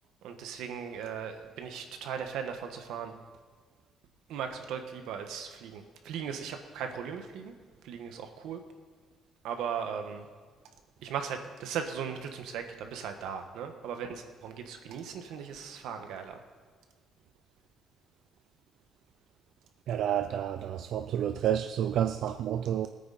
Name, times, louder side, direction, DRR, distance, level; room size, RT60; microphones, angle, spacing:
voice 1, 0.2-3.1 4.3-7.5 7.8-8.6 9.4-10.3 11.0-16.4, right 7 dB, 85° right, 6 dB, 1.5 m, -38 dB
voice 2, 19.9-22.9, right 10 dB, 60° right, 9 dB, 0.5 m, -30 dB
20.5 x 9.2 x 4.3 m, 1.5 s
cardioid pair, 165°, 0 cm